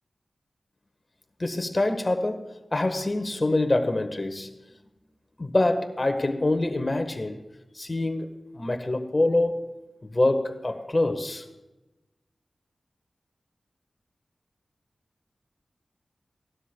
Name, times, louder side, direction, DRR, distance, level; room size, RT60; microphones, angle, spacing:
voice 1, 1.4-4.5 5.4-7.4 7.7-9.8 10.1-11.5, left 2 dB, 35° left, 1.3 m, -25 dB
18.0 x 12.5 x 2.2 m
wide cardioid pair, 70°, 0 cm